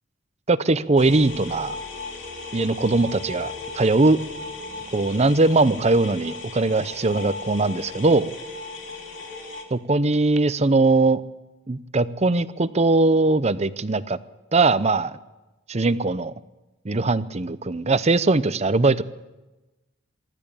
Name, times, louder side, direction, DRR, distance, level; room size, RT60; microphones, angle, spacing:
voice 1, 0.5-1.8 2.5-4.2 4.9-8.3 9.7-11.2 11.7-14.2 14.5-15.1 15.7-16.3 16.8-19.0, right 3 dB, 30° right, 15 dB, 0.7 m, -20 dB
sound 1, 1.0-9.6, left 2 dB, 60° left, 3.1 m, -36 dB
24.5 x 12.5 x 8.5 m, 1.1 s
head